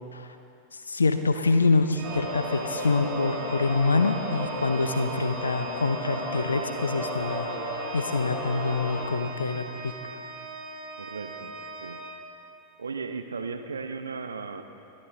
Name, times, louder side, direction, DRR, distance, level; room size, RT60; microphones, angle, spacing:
voice 1, 0.7-7.5 7.9-10.1, left 3 dB, 75° left, 8 dB, 0.7 m, -26 dB
Organ, 1.9-12.8, right 3 dB, 25° right, 1.6 m, -41 dB
sound 1, 2.0-9.0, equal, 35° left, 2.9 m, -34 dB
voice 2, 11.0-12.0 12.8-14.6, right 4 dB, 70° right, 8 dB, 0.8 m, -36 dB
23.0 x 8.8 x 3.7 m, 2.6 s
figure-of-eight pair, 90°, 0 cm